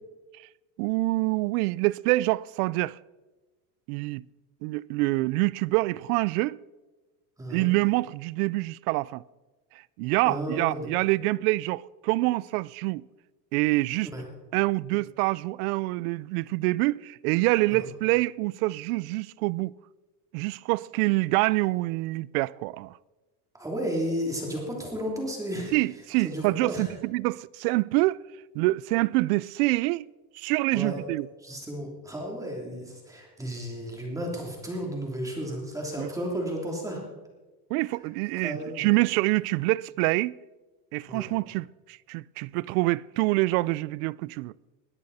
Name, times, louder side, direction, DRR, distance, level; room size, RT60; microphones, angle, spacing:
voice 1, 0.8-3.0 3.9-4.2 4.6-6.6 7.5-9.2 10.0-13.1 13.5-14.1 14.5-19.7 20.3-23.0 25.7-28.2 28.5-30.1 30.3-31.3 36.0-36.1 37.7-40.4 40.9-44.5, right 21 dB, 75° right, 0.5 m, -26 dB
voice 2, 7.4-7.7 10.2-10.9 14.1-14.2 17.7-17.9 23.5-25.7 26.2-26.9 30.7-31.0 31.4-37.0 38.4-38.9 41.1-41.3, equal, 5° right, 3.1 m, -33 dB
20.5 x 13.5 x 4.2 m
cardioid pair, 165°, 44 cm